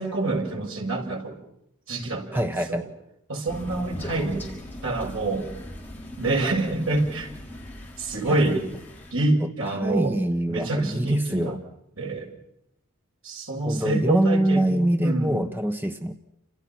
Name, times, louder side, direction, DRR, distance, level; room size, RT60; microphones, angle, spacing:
voice 1, 0.0-1.4 1.9-2.9 3.3-4.4 4.8-5.4 6.2-7.3 8.0-8.6 9.1-10.2 10.5-11.6 12.0-12.3 13.2-15.4, right 2 dB, 65° right, 1 dB, 7.3 m, -26 dB
voice 2, 2.3-2.8 8.2-8.4 9.4-9.5 9.7-11.6 13.6-16.2, right 1 dB, 10° right, 7 dB, 1.0 m, -24 dB
Crow, 3.5-9.1, left 1 dB, 10° left, 5.7 m, -39 dB
30.0 x 28.0 x 6.0 m, 0.82 s
head